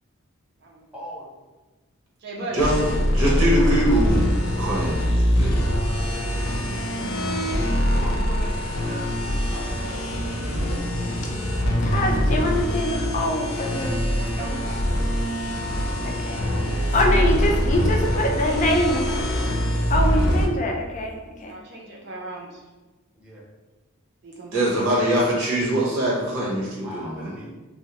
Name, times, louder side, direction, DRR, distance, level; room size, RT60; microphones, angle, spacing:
voice 1, 0.9-1.3 8.0-9.3 9.5-10.8 23.1-23.4 26.8-27.5, equal, 5° right, -7 dB, 0.7 m, -40 dB
voice 2, 2.2-2.8 14.2-14.8 17.2-17.8 18.1-19.3 21.5-22.6 24.2-24.6, right 2 dB, 50° right, -1 dB, 0.4 m, -37 dB
sound 1, 2.6-20.5, equal, 90° left, 0.5 m, -23 dB
voice 3, 3.1-4.3 4.6-5.0 5.3-5.5 24.5-27.3, right 1 dB, 90° right, -5 dB, 1.0 m, -22 dB
voice 4, 11.8-14.0 14.4-14.6 16.0-16.4 16.9-19.1 19.9-21.1 21.4-21.5, left 1 dB, 35° left, 1 dB, 0.3 m, -24 dB
2.6 x 2.0 x 2.9 m, 1.2 s
head